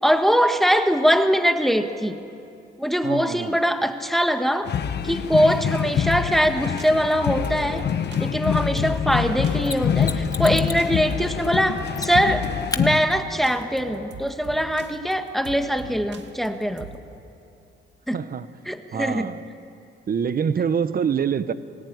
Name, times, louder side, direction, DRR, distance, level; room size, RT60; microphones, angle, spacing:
voice 1, 0.0-2.2 2.8-4.7 5.0-7.9 8.2-12.5 12.8-16.9 18.1-18.2 18.7-19.3, equal, ahead, 7 dB, 1.5 m, -22 dB
voice 2, 3.0-3.6 18.1-18.5 18.9-19.4 20.1-21.5, right 7 dB, 50° right, 13 dB, 1.2 m, -25 dB
sound 1, 4.7-13.0, left 8 dB, 60° left, 1.2 m, -25 dB
sound 2, 5.5-17.0, right 5 dB, 65° right, 2.5 m, -42 dB
Mechanisms, 9.6-10.9 11.9-12.4 12.7-12.9 15.6-15.7, left 3 dB, 20° left, 1.5 m, -32 dB
29.5 x 19.0 x 9.6 m, 2.7 s
cardioid pair, 90°, 20 cm